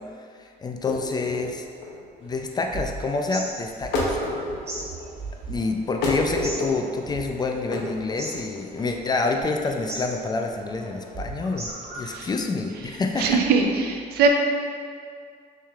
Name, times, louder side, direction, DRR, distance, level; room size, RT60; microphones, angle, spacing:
voice 1, 0.6-1.6 2.2-4.2 5.5-11.7 11.9-13.4, left 3 dB, 25° left, 3 dB, 0.3 m, -27 dB
sound 1, 0.7-13.6, left 2 dB, 80° left, 0.8 m, -32 dB
sound 2, 2.3-12.3, right 2 dB, 35° right, 1.3 m, -38 dB
voice 2, 13.2-14.3, right 5 dB, 70° right, 2 dB, 0.5 m, -21 dB
6.2 x 3.3 x 2.3 m, 2.1 s
cardioid pair, 110°, 17 cm